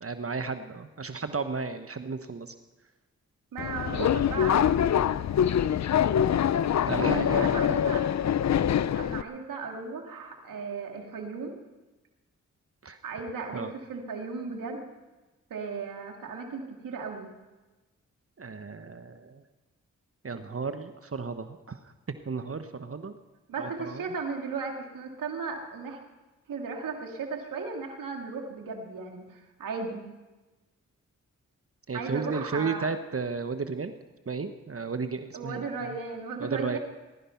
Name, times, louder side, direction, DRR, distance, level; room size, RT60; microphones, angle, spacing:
voice 1, 0.0-2.5 6.8-7.7 12.8-13.0 13.5-13.7 18.4-19.4 20.2-21.8 22.2-23.1 23.6-24.0 31.9-33.9 34.3-35.9 36.4-36.8, right 4 dB, 45° right, 9 dB, 1.2 m, -34 dB
voice 2, 3.5-5.1 7.0-8.0 8.9-11.5 13.0-14.9 15.5-17.3 23.5-26.0 26.5-30.0 31.9-32.9 35.3-36.8, right 4 dB, 90° right, 2 dB, 2.3 m, -36 dB
Subway metro underground, 3.6-9.2, left 9 dB, 60° left, 0.6 m, -24 dB
19.5 x 12.0 x 5.8 m, 1.2 s
cardioid pair, 40°, 32 cm